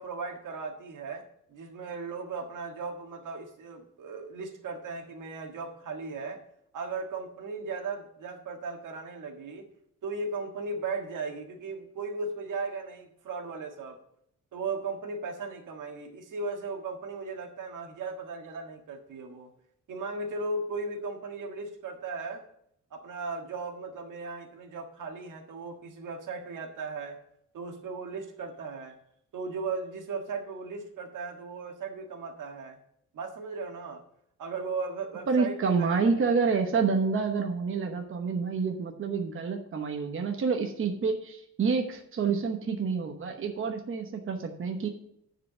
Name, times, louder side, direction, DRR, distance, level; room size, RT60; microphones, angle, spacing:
voice 1, 0.0-6.4 6.7-9.6 10.0-14.0 14.5-19.5 19.9-22.4 22.9-27.2 27.5-28.9 29.3-32.8 33.1-34.0 34.4-36.1, right 4 dB, 85° right, 4 dB, 1.6 m, -37 dB
voice 2, 35.3-44.9, right 5 dB, 45° right, 4 dB, 1.0 m, -28 dB
10.0 x 4.9 x 6.7 m, 0.71 s
wide cardioid pair, 155°, 30 cm